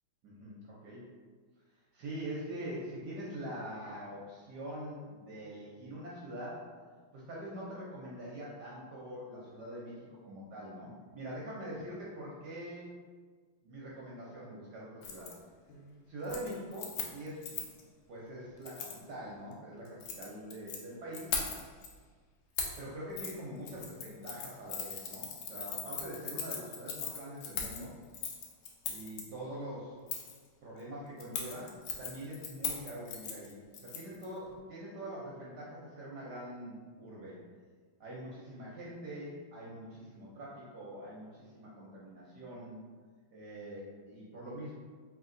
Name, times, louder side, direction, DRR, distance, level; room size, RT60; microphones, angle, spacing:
voice 1, 0.2-1.0 1.7-6.7 7.1-12.9 13.6-15.3 16.1-17.6 18.1-21.4 22.8-27.9 28.9-30.0 30.6-37.4 38.0-42.8 43.3-44.7, right 1 dB, 65° right, -6 dB, 1.0 m, -44 dB
Keys jangling, 15.0-15.3 15.7-16.0 16.2-17.8 18.7-19.0 19.9-20.8 21.1-21.9 22.6-22.8 23.2-23.3 23.7-29.2 30.1-30.4 31.2-34.3 34.5-34.6, left 6 dB, 90° left, 1.5 m, -39 dB
3.4 x 3.1 x 3.7 m, 1.6 s
omnidirectional pair, 2.4 m